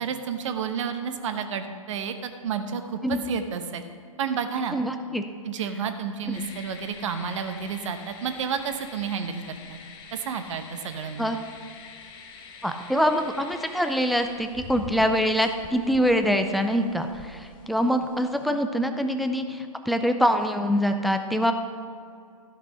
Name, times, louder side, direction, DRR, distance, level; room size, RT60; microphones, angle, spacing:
voice 1, 0.0-3.8 4.2-4.8 5.4-9.4 9.7-9.8 10.1-11.3, right 6 dB, 55° right, 8 dB, 1.0 m, -31 dB
voice 2, 4.7-5.2 11.2-11.4 12.6-21.5, equal, ahead, 7 dB, 0.4 m, -24 dB
sound 1, 6.3-18.5, left 5 dB, 25° left, 1.0 m, -46 dB
13.5 x 6.0 x 5.6 m, 2.3 s
hypercardioid pair, 130°, 18 cm